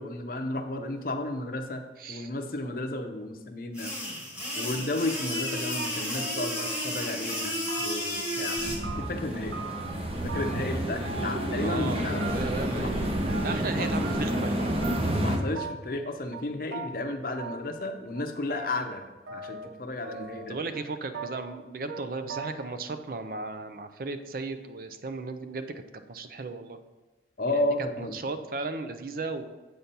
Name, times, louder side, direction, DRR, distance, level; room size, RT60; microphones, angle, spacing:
voice 1, 0.0-1.8 2.1-3.9 4.5-8.6 9.0-9.6 10.2-12.2 12.8-12.9 13.8-13.9 15.2-19.0 19.3-20.6 27.4-28.2, left 2 dB, 50° left, 6 dB, 0.7 m, -33 dB
voice 2, 2.0-2.3 11.6-13.1 13.4-14.8 20.5-26.8 28.0-29.5, right 3 dB, 50° right, 9 dB, 0.5 m, -36 dB
sound 1, 3.7-8.8, left 1 dB, 5° right, 1.6 m, -32 dB
sound 2, 5.4-5.5 5.8-7.0 7.3-8.2 8.4-9.9 10.3-10.8 11.0-11.9 12.2-12.7 12.9-13.7 14.0-14.6 14.8-15.3 15.6-16.0 16.3-16.4 16.7-16.9 17.4-17.9 18.1-19.8 20.0-20.9 21.1-21.6 21.9-22.0 22.3-22.8, right 4 dB, 70° right, 0.9 m, -40 dB
sound 3, 8.6-15.4, equal, 30° right, 0.8 m, -29 dB
7.9 x 4.3 x 5.3 m, 1.2 s
head